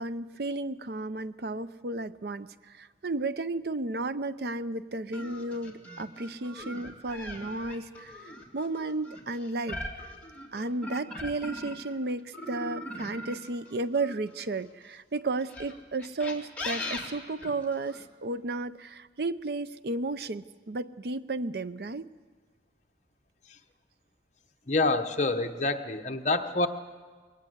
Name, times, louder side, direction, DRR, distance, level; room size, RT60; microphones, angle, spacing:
voice 1, 0.0-9.8 10.5-22.1, right 2 dB, 65° right, 14 dB, 0.6 m, -33 dB
sound 1, 5.1-11.9 12.3-14.7 15.4-18.0, left 1 dB, 10° left, 2.6 m, -40 dB
voice 2, 24.7-26.7, left 2 dB, 40° left, 5 dB, 1.1 m, -27 dB
21.5 x 18.0 x 8.0 m, 1.5 s
head